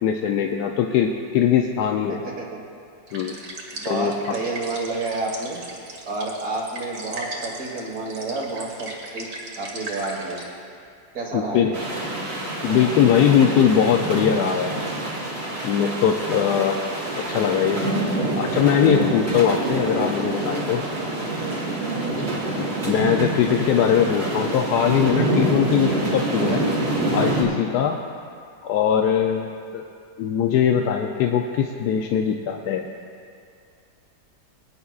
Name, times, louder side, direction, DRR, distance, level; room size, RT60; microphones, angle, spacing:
voice 1, 0.0-2.2 3.1-3.3 3.9-4.4 11.3-11.7 12.6-14.9 15.6-16.8 17.2-18.0 18.4-20.8 22.5-26.7 27.1-28.0 28.6-29.8 30.2-32.9, left 8 dB, 70° left, 2 dB, 1.0 m, -21 dB
voice 2, 2.1-2.6 3.7-5.6 6.1-9.3 9.6-10.4 11.1-11.8 22.2-22.4, right 3 dB, 55° right, -2 dB, 2.1 m, -30 dB
sound 1, 3.1-10.5, right 2 dB, 85° right, 2.4 m, -38 dB
sound 2, 11.7-27.4, right 2 dB, 35° right, 2.2 m, -26 dB
22.5 x 9.7 x 2.4 m, 2.3 s
omnidirectional pair, 1.9 m